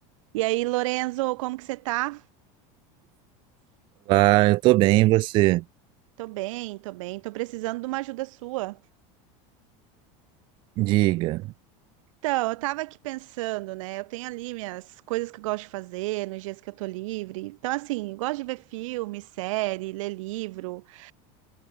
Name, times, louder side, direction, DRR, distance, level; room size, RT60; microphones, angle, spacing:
voice 1, 0.3-2.2 6.2-8.8 12.2-21.1, right 20 dB, 80° right, 0.7 m, -31 dB
voice 2, 4.1-5.6 10.8-11.5, right 19 dB, 30° right, 0.4 m, -19 dB
supercardioid pair, 175°, 16 cm